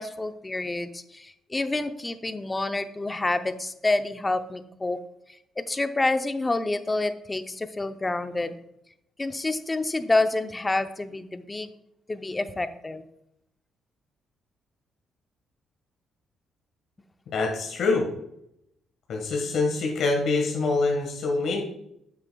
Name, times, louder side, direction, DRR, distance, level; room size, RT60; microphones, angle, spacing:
voice 1, 0.0-5.0 5.6-8.5 9.2-11.7 12.1-13.0, left 2 dB, 20° left, 10 dB, 0.6 m, -28 dB
voice 2, 17.3-18.1 19.1-21.6, left 3 dB, 70° left, 1 dB, 1.5 m, -25 dB
9.1 x 7.5 x 2.3 m, 0.79 s
cardioid pair, 90°, 0 cm